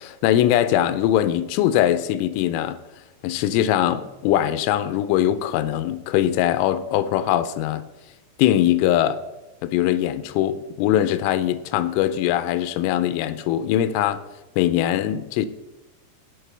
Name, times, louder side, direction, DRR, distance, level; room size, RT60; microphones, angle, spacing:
voice 1, 0.0-2.8 3.2-7.8 8.4-9.2 9.6-14.2 14.6-15.5, left 12 dB, 90° left, 3.1 m, -21 dB
15.5 x 6.0 x 3.3 m
omnidirectional pair, 5.5 m